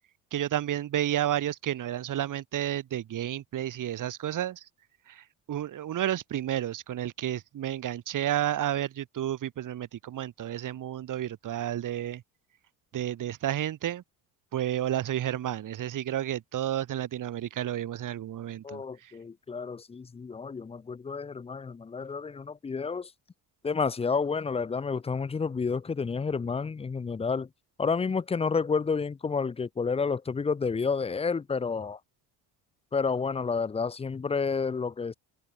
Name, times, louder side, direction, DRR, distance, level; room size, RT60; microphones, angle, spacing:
voice 1, 0.3-4.7 5.1-12.2 12.9-14.0 14.5-19.1, right 11 dB, 45° right, 1.3 m, -31 dB
voice 2, 18.6-23.1 23.6-27.5 27.8-32.0 32.9-35.1, left 5 dB, 15° left, 0.5 m, -30 dB
open air
cardioid pair, 95°, 42 cm